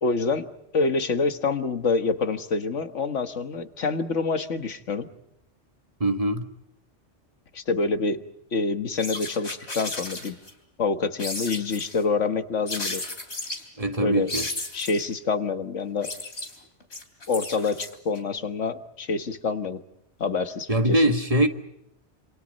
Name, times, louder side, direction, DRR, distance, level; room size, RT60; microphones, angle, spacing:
voice 1, 0.0-5.1 7.5-8.2 8.5-10.4 10.8-13.1 14.0-14.3 14.7-16.1 17.3-19.8 20.2-21.0, left 4 dB, 90° left, 1.8 m, -26 dB
voice 2, 6.0-6.5 13.8-14.5 20.7-21.5, right 1 dB, 30° right, 1.7 m, -22 dB
sound 1, 9.0-10.5 11.2-12.0 12.7-13.6 14.3-15.1 15.8-18.2, left 2 dB, 65° left, 3.7 m, -34 dB
27.5 x 27.5 x 5.3 m
omnidirectional pair, 1.2 m